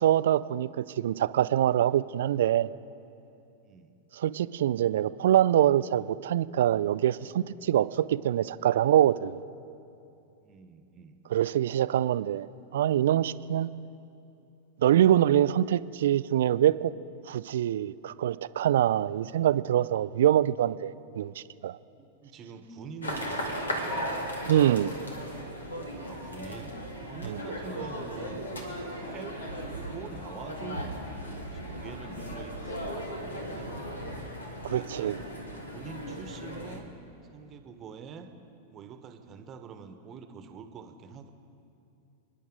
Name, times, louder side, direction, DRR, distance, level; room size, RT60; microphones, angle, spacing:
voice 1, 0.0-2.7 4.1-9.4 11.3-12.5 12.7-13.7 14.8-16.9 17.3-21.8 24.5-24.9 27.2-27.4 34.6-35.2, right 11 dB, 60° right, 16 dB, 0.4 m, -24 dB
voice 2, 3.6-3.9 10.4-11.2 22.0-24.1 25.9-26.7 27.0-29.4 29.7-30.9 31.5-34.2 34.7-35.3 35.7-36.8 37.3-38.3 38.7-41.3, right 6 dB, 30° right, 8 dB, 1.2 m, -45 dB
sound 1, 23.0-36.8, equal, 75° left, 1.9 m, -37 dB
30.0 x 10.5 x 3.8 m, 2.7 s
figure-of-eight pair, 90°, 0 cm